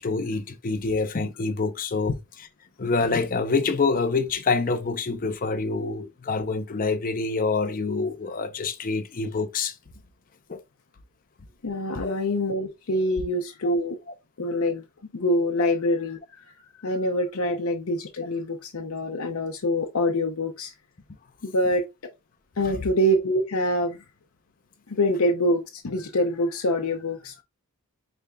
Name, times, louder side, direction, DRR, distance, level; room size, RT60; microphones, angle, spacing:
voice 1, 0.0-2.1 2.8-9.7 10.5-10.6 11.9-12.2 13.6-13.8 17.5-17.6 22.6-22.8, left 4 dB, 40° left, 0.6 m, -26 dB
voice 2, 11.6-14.0 14.4-14.8 15.1-16.2 16.8-20.7 21.4-21.8 22.6-24.0 24.9-27.4, left 1 dB, 80° left, 0.7 m, -25 dB
5.1 x 3.3 x 2.3 m
head